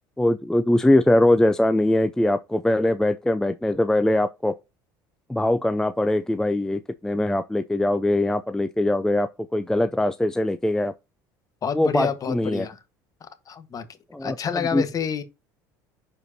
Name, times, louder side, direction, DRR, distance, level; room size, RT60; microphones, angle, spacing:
voice 1, 0.2-4.5 5.3-10.9 11.7-12.7 14.1-14.4 14.7-14.8, left 1 dB, 5° left, 0.4 m, -22 dB
voice 2, 11.6-12.8 13.2-13.9 14.2-15.2, left 7 dB, 40° left, 1.3 m, -28 dB
11.0 x 4.6 x 2.8 m
supercardioid pair, 90°, 10 cm